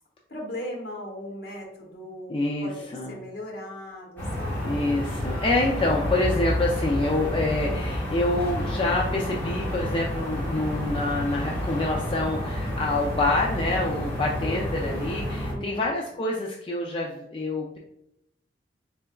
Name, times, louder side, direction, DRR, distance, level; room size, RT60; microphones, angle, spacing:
voice 1, 0.3-2.3 2.6-5.0 15.5-16.0, left 1 dB, 60° left, -1 dB, 1.0 m, -38 dB
voice 2, 2.3-3.2 4.6-17.8, left 2 dB, 30° left, -1 dB, 0.3 m, -27 dB
sound 1, 4.2-15.5, equal, 10° left, 0.9 m, -30 dB
3.7 x 3.4 x 2.2 m, 0.81 s
head